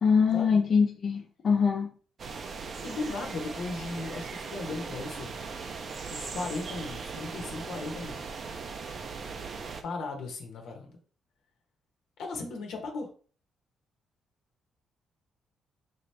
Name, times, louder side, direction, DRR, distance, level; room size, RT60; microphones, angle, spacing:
voice 1, 0.0-1.9, left 5 dB, 50° left, 0 dB, 0.7 m, -23 dB
sound 1, 2.2-9.8, right 5 dB, 50° right, 0.5 m, -39 dB
voice 2, 2.8-5.3 6.1-8.4 9.8-11.0 12.2-13.1, left 3 dB, 80° left, 2 dB, 1.0 m, -37 dB
4.0 x 2.9 x 3.3 m, 0.42 s
cardioid pair, 110°, 0 cm